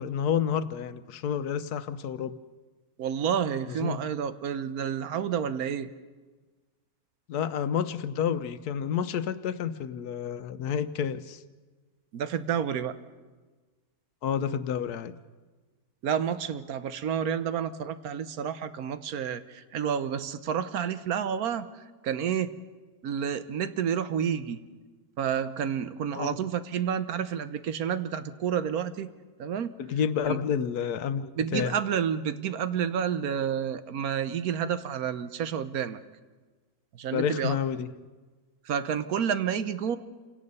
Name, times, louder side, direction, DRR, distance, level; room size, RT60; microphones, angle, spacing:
voice 1, 0.0-2.3 3.7-4.0 7.3-11.4 14.2-15.1 26.1-26.3 29.8-31.8 37.1-37.9, left 8 dB, 80° left, 12 dB, 1.3 m, -29 dB
voice 2, 3.0-5.9 12.1-13.0 16.0-22.5 23.0-24.6 25.2-29.1 29.4-29.7 30.3-30.4 31.4-36.0 37.0-37.6 38.7-40.0, right 8 dB, 70° right, 12 dB, 1.3 m, -30 dB
28.5 x 17.5 x 5.5 m, 1.3 s
omnidirectional pair, 1.6 m